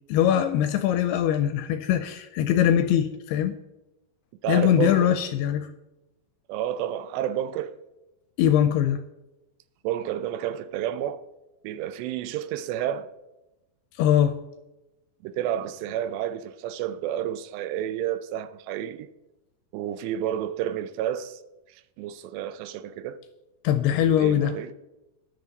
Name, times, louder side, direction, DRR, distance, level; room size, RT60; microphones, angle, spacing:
voice 1, 0.1-3.6 4.5-5.7 8.4-9.0 14.0-14.4 23.6-24.6, left 10 dB, 80° left, 2.4 m, -22 dB
voice 2, 4.4-5.1 6.5-7.7 9.8-11.2 11.6-13.1 15.2-19.1 19.7-21.4 21.7-23.2 24.2-24.7, right 11 dB, 80° right, 2.7 m, -30 dB
13.0 x 10.5 x 4.0 m
omnidirectional pair, 5.1 m